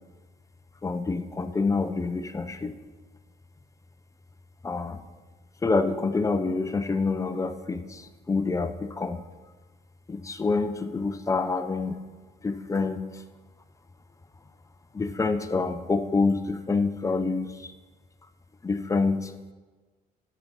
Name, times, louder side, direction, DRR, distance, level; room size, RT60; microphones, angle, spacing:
voice 1, 0.8-2.8 4.6-5.0 5.6-9.2 10.1-12.0 12.4-13.2 14.9-17.7 18.6-19.3, left 4 dB, 20° left, 9 dB, 0.6 m, -27 dB
10.5 x 5.3 x 6.1 m, 1.3 s
cardioid pair, 110°, 17 cm